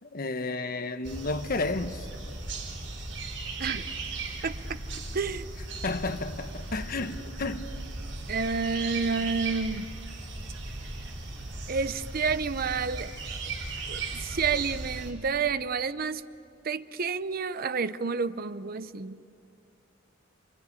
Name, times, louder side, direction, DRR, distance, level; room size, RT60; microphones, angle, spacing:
voice 1, 0.0-2.1 5.8-7.8, left 3 dB, 50° left, 1.0 m, -32 dB
sound 1, 1.0-15.1, right 3 dB, 90° right, 4.9 m, -37 dB
voice 2, 4.4-4.8 5.1-5.5 8.3-9.9 11.7-13.1 13.9-16.2 16.6-19.2, right 5 dB, 50° right, 0.7 m, -29 dB
29.0 x 24.5 x 8.4 m
head